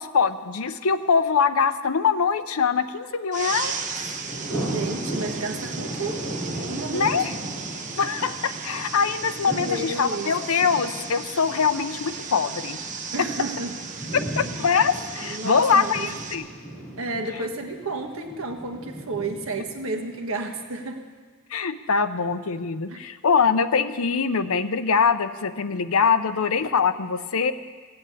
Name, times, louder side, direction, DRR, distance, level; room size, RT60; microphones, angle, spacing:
voice 1, 0.0-3.9 6.9-7.3 8.0-12.8 14.4-16.4 21.5-27.5, left 6 dB, 80° left, 11 dB, 0.7 m, -23 dB
sound 1, 3.3-16.3, right 5 dB, 35° right, 1.1 m, -36 dB
Thunder, 3.6-20.6, right 1 dB, ahead, 6.0 m, -36 dB
voice 2, 4.5-6.3 6.7-7.3 8.9-9.0 9.5-10.4 13.1-13.8 15.2-16.1 17.0-21.1 22.9-23.0, right 2 dB, 70° right, 4 dB, 1.5 m, -32 dB
16.5 x 8.0 x 8.5 m, 1.5 s
head